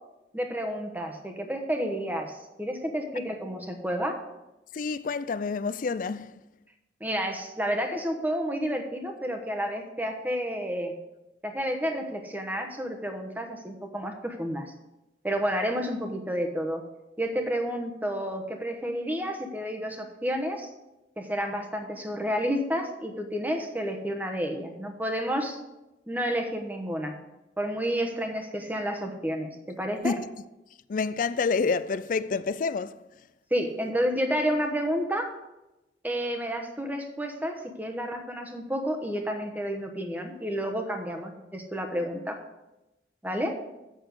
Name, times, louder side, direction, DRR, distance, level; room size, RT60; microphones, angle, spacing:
voice 1, 0.3-4.2 7.0-10.9 11.4-14.7 15.2-16.8 17.2-20.7 21.2-25.6 26.1-27.2 27.6-30.2 33.5-35.3 36.0-42.4 43.2-43.6, equal, 10° right, 1.1 m, -30 dB
voice 2, 4.7-6.4 30.0-30.3 30.9-32.9, left 4 dB, 45° left, 0.4 m, -28 dB
8.1 x 6.6 x 6.5 m
head